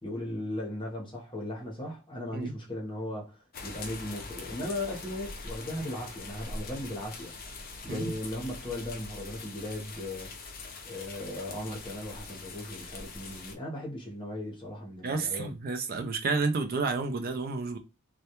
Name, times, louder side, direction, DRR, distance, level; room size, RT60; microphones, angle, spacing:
voice 1, 0.0-3.4 3.6-7.3 7.8-10.3 10.8-15.5, left 1 dB, 25° left, 0.8 m, -37 dB
sound 1, 3.5-13.6, left 3 dB, 45° left, 0.4 m, -43 dB
voice 2, 15.0-17.8, right 4 dB, 45° right, 0.4 m, -30 dB
2.2 x 2.1 x 2.8 m
head